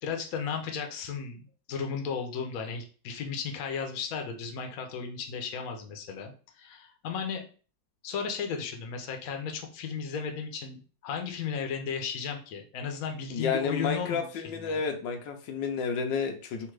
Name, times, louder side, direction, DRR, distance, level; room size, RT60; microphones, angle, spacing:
voice 1, 0.0-7.4 8.0-14.8, left 6 dB, 60° left, 4 dB, 1.1 m, -35 dB
voice 2, 13.3-16.7, left 5 dB, 85° left, 4 dB, 1.4 m, -31 dB
3.6 x 2.6 x 4.6 m, 0.38 s
omnidirectional pair, 2.0 m